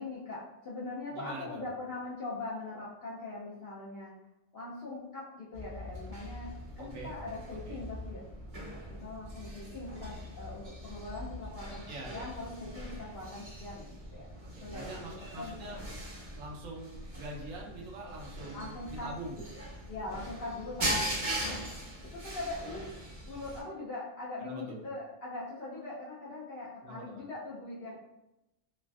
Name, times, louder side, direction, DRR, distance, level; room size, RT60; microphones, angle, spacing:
voice 1, 0.0-4.2 4.5-8.3 8.9-14.3 14.6-15.8 18.5-21.2 21.4-21.7 22.0-23.0 23.3-28.0, left 2 dB, 65° left, -6 dB, 0.6 m, -42 dB
voice 2, 1.1-1.7 6.8-7.1 7.7-7.8 11.9-12.3 14.6-15.8 16.4-19.5 24.4-24.8 26.8-27.2, right 2 dB, 75° right, -1 dB, 0.9 m, -44 dB
sound 1, 5.5-23.6, right 1 dB, 35° right, 0.6 m, -41 dB
3.1 x 2.4 x 2.3 m, 0.93 s
omnidirectional pair, 1.5 m